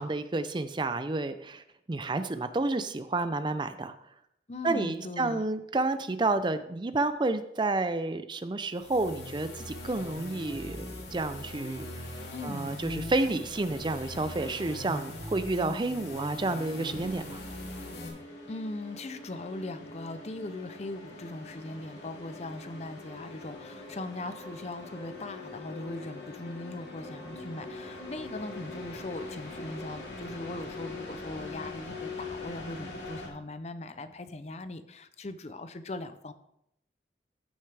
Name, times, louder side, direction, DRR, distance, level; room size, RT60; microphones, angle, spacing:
voice 1, 0.0-3.9 4.6-11.9 12.4-17.4, right 2 dB, 25° right, 11 dB, 0.4 m, -30 dB
voice 2, 4.5-5.4 12.3-12.8 18.5-36.3, left 2 dB, 40° left, 11 dB, 0.6 m, -40 dB
sound 1, 8.7-18.1, left 1 dB, 65° left, 2.9 m, -41 dB
sound 2, 15.9-33.3, left 3 dB, 90° left, 2.2 m, -43 dB
14.5 x 6.6 x 3.4 m, 0.77 s
head